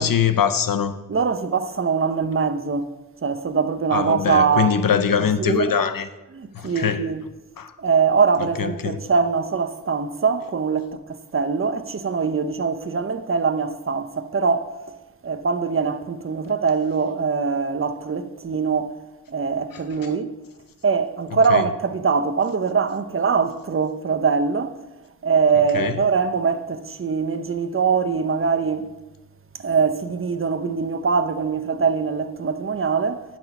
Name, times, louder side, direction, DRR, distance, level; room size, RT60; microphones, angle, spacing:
voice 1, 0.0-1.0 3.9-6.1 6.5-7.1 7.6-7.7 8.4-9.0 21.5-21.6 25.7-26.0, left 7 dB, 70° left, 0.7 m, -22 dB
voice 2, 1.1-2.9 3.2-4.8 5.2-5.7 6.3-7.2 7.8-14.7 15.2-19.0 19.3-20.4 20.8-24.8 25.2-29.0 29.6-33.2, right 5 dB, 40° right, 0.7 m, -22 dB
9.0 x 6.1 x 5.9 m
wide cardioid pair, 60°, 35 cm